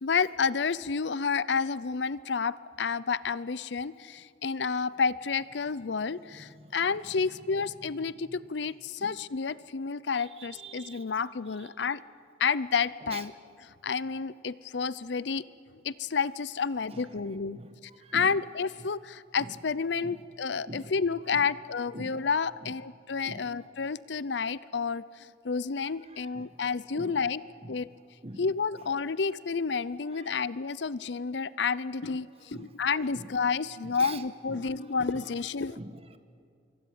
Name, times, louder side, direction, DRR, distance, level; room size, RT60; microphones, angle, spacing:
voice 1, 0.0-12.0 12.4-13.3 13.8-15.4 15.8-17.6 18.1-27.4 27.7-27.9 28.4-35.8, left 5 dB, 70° left, 18 dB, 0.6 m, -30 dB
voice 2, 6.4-6.8 9.0-9.2 10.1-11.0 11.6-11.7 13.1-13.2 16.9-18.4 19.4-19.6 20.0-20.2 20.7-20.9 21.3-21.5 21.9-22.2 22.6-22.8 23.2-23.5 26.0-26.6 26.9-27.2 27.6-27.8 28.2-28.5 28.8-28.9 30.1-30.3 32.5-32.7 33.1-33.3 33.8-34.2 34.5-34.7 35.1-35.2 35.7-36.2, right 2 dB, 35° right, 9 dB, 1.5 m, -45 dB
25.0 x 23.5 x 9.5 m, 2.4 s
head